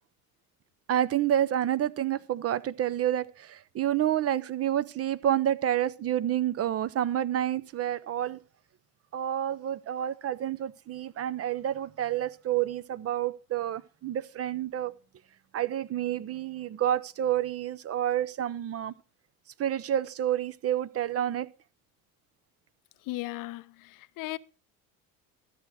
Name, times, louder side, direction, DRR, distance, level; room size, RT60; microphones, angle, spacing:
voice 1, 0.9-8.4 9.1-14.9 15.5-18.9 19.6-21.5, right 11 dB, 35° right, 0.6 m, -29 dB
voice 2, 23.1-24.4, left 18 dB, 50° left, 0.6 m, -36 dB
13.0 x 7.7 x 4.8 m
hypercardioid pair, 70°, 44 cm